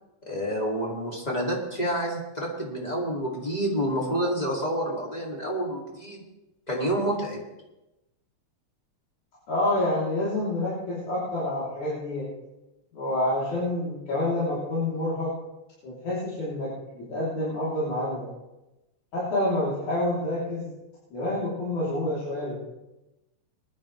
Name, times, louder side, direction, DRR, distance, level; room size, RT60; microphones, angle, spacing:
voice 1, 0.3-6.2 6.7-7.4, right 1 dB, 15° left, -2 dB, 2.3 m, -28 dB
voice 2, 9.5-12.3 12.9-15.3 15.8-18.3 19.1-20.7 21.1-22.6, left 1 dB, 90° left, -9 dB, 4.8 m, -28 dB
20.0 x 11.5 x 3.3 m, 0.98 s
omnidirectional pair, 3.3 m